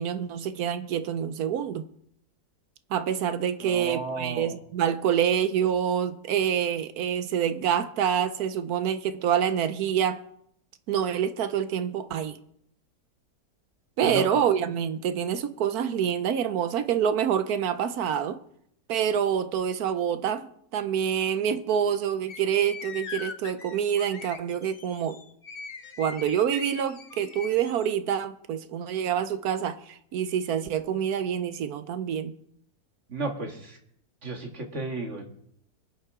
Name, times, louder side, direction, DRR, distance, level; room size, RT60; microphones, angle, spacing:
voice 1, 0.0-1.9 2.9-10.2 10.9-12.4 14.0-18.4 18.9-25.2 26.0-32.4, right 8 dB, 70° right, 1.2 m, -27 dB
voice 2, 3.6-4.6 14.0-14.3 33.1-33.8 34.2-35.3, right 3 dB, 45° right, 2.0 m, -33 dB
sound 1, 22.3-27.9, left 5 dB, 40° left, 1.0 m, -41 dB
23.0 x 9.5 x 3.7 m
omnidirectional pair, 1.7 m